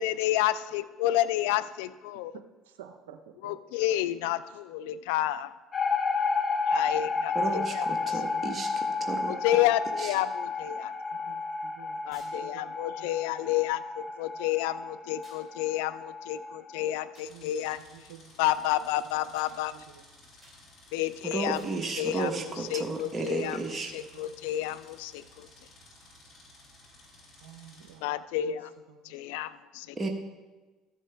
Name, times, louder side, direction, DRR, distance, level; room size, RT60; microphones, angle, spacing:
voice 1, 0.0-2.3 3.4-5.5 6.7-7.8 9.3-10.9 12.1-17.8 18.4-19.7 20.9-21.6 22.0-22.3 22.7-23.6 23.9-25.5 28.0-28.7 29.0-30.0, left 13 dB, 80° left, 15 dB, 0.3 m, -30 dB
voice 2, 2.3-4.0 4.5-4.6 7.1-7.6 8.2-8.5 8.8-9.3 11.1-13.4 14.3-14.4 17.3-17.5 17.8-18.3 19.0-19.1 19.7-20.1 21.9-22.1 22.4-22.6 23.0-23.6 23.8-24.6 27.4-28.2 28.4-29.2, right 9 dB, 85° right, 7 dB, 0.5 m, -51 dB
sound 1, 5.7-16.9, left 4 dB, 35° left, 0.7 m, -32 dB
voice 3, 7.3-9.4 10.0-10.2 21.2-23.9 29.9-30.1, right 3 dB, 25° right, 1 dB, 1.2 m, -33 dB
sound 2, 12.1-12.4 15.2-15.5 17.1-17.3 19.4-19.6 20.4-20.6 21.5-21.8, right 2 dB, ahead, 3.2 m, -56 dB
sound 3, 17.2-27.9, left 1 dB, 55° left, 2.4 m, -55 dB
13.5 x 7.6 x 3.4 m, 1.2 s
supercardioid pair, 75°, 0 cm